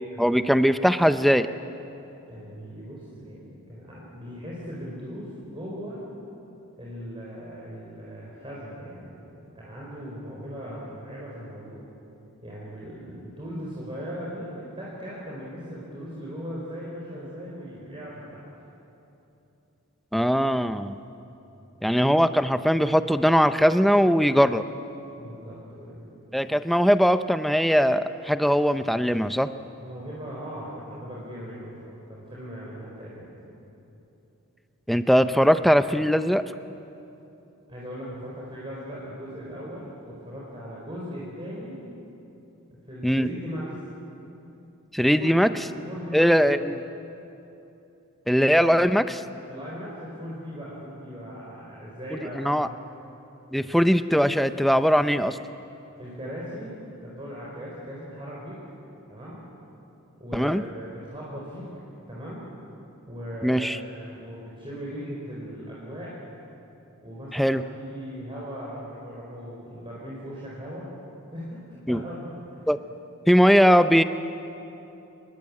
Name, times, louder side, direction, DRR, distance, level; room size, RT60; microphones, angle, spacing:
voice 1, 0.2-1.5 20.1-21.0 21.8-24.6 26.3-29.5 34.9-36.4 43.0-43.3 44.9-45.5 46.1-46.8 48.3-49.2 52.2-52.7 53.5-55.4 60.3-60.6 63.4-63.8 67.3-67.6 71.9-72.0 72.7-72.8 73.3-74.0, equal, ahead, 10 dB, 0.6 m, -20 dB
voice 2, 2.3-6.0 6.8-11.8 12.4-18.5 25.1-26.1 29.8-33.5 37.7-41.8 42.9-43.7 45.0-46.5 49.5-52.6 56.0-56.7 57.0-58.6 59.1-59.4 60.2-61.7 62.1-62.4 63.1-66.1 67.0-70.8 71.3-71.6 71.9-72.3, equal, 25° right, -6 dB, 4.7 m, -38 dB
28.5 x 22.0 x 8.6 m, 2.9 s
head